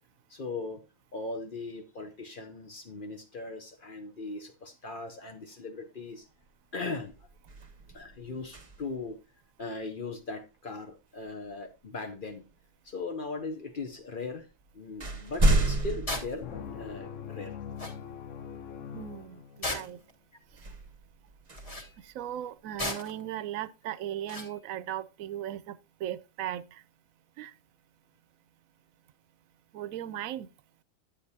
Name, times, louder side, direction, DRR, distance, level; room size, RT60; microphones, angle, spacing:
voice 1, 0.3-0.8 1.1-6.3 6.7-7.1 7.9-9.2 9.6-12.4 12.8-14.5 14.7-17.6, left 3 dB, 45° left, 0.9 m, -39 dB
sound 1, 6.4-6.7 7.0-9.1 11.3-11.5 12.3-13.0 13.9-14.0 14.4-17.2 17.8-17.9 20.5-22.7, right 1 dB, 30° right, 0.9 m, -31 dB
sound 2, 16.1-16.3 17.5-17.6 17.8-18.0 19.6-20.1 21.5-21.9 22.8-23.2 24.3-24.5, left 1 dB, 30° left, 1.4 m, -35 dB
sound 3, 16.4-20.0, left 8 dB, 75° left, 1.1 m, -42 dB
voice 2, 18.9-20.0 22.0-26.8 27.4-27.5 29.7-30.5, right 11 dB, 85° right, 1.0 m, -37 dB
10.0 x 8.3 x 2.7 m
omnidirectional pair, 1.4 m